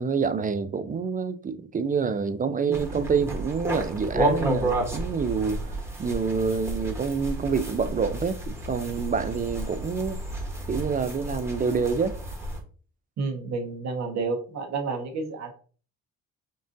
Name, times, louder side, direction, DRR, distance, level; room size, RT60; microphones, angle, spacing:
voice 1, 0.0-5.7 6.0-10.2 10.7-12.2, right 5 dB, 30° right, 0.4 m, -27 dB
sound 1, 2.7-12.6, right 1 dB, 10° right, 1.1 m, -31 dB
voice 2, 13.2-15.5, right 4 dB, 65° right, 1.1 m, -30 dB
5.3 x 2.5 x 2.6 m
cardioid pair, 90°, 30 cm